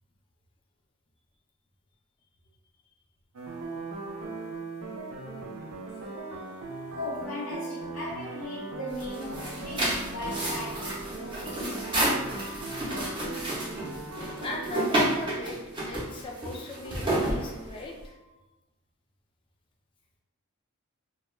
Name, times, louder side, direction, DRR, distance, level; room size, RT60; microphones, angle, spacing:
sound 1, 3.3-14.9, right 3 dB, 80° right, 0.5 m, -39 dB
voice 1, 6.9-11.8, left 2 dB, 75° left, -6 dB, 0.6 m, -38 dB
sound 2, 8.9-18.0, right 1 dB, 20° right, 0.6 m, -30 dB
voice 2, 14.4-18.4, left 2 dB, 25° left, 0 dB, 0.3 m, -38 dB
2.2 x 2.2 x 3.0 m, 1.0 s
head